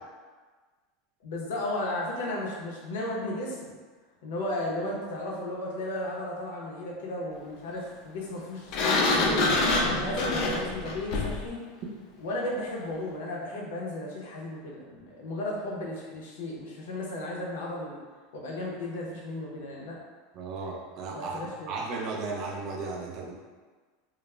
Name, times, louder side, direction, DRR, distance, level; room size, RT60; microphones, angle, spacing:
voice 1, 1.2-3.8 4.2-9.5 9.8-11.6 12.2-18.0 18.3-20.0 21.1-21.7, left 1 dB, 80° left, -3 dB, 0.6 m, -34 dB
Sliding door, 8.7-11.5, left 2 dB, 45° left, 0.3 m, -26 dB
voice 2, 20.3-23.3, right 3 dB, 35° right, -1 dB, 0.4 m, -35 dB
2.3 x 2.0 x 3.1 m, 1.4 s
supercardioid pair, 165°, 0 cm